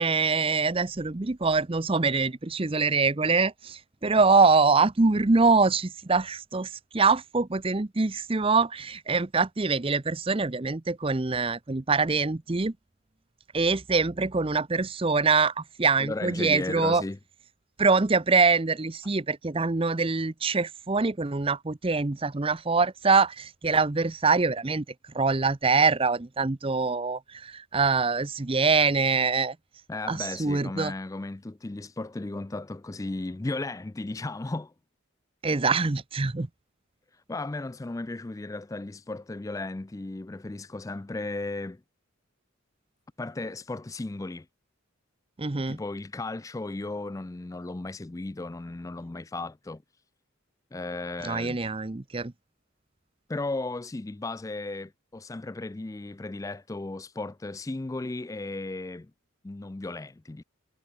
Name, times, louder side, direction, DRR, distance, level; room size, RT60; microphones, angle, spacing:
voice 1, 0.0-12.7 13.5-17.0 17.8-24.8 25.1-29.6 30.1-30.9 35.4-36.5 45.4-45.8 51.2-52.3, right 4 dB, 25° right, 0.6 m, -24 dB
voice 2, 16.0-17.2 29.9-34.7 37.3-41.8 43.2-44.5 45.7-49.8 50.7-51.6 53.3-59.1 59.4-60.4, left 2 dB, 15° left, 0.3 m, -35 dB
head